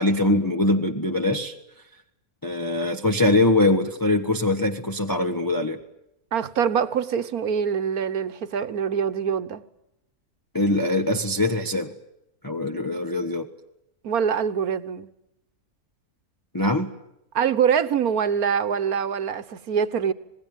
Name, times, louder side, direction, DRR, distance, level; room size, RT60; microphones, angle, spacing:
voice 1, 0.0-1.5 2.4-5.8 10.5-11.9 12.4-13.5 16.5-16.9, left 2 dB, 15° left, 1.2 m, -22 dB
voice 2, 6.3-9.6 14.0-15.1 17.3-20.1, right 7 dB, 70° right, 1.6 m, -24 dB
26.5 x 20.5 x 9.2 m
omnidirectional pair, 1.6 m